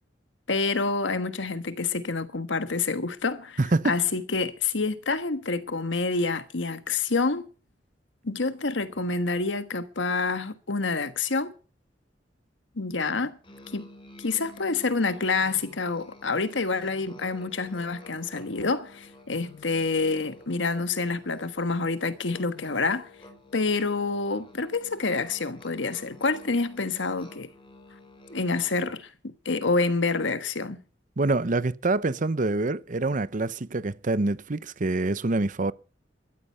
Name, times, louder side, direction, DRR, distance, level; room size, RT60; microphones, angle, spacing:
voice 1, 0.5-3.6 3.8-7.5 8.2-11.5 12.8-13.4 13.7-13.9 14.2-23.1 23.5-27.5 28.3-30.8, left 3 dB, 90° left, 1.4 m, -27 dB
voice 2, 3.6-3.9 31.2-35.7, right 2 dB, 45° right, 0.7 m, -26 dB
Musical instrument, 13.4-29.0, left 2 dB, 30° left, 5.0 m, -51 dB
14.0 x 13.0 x 5.6 m
head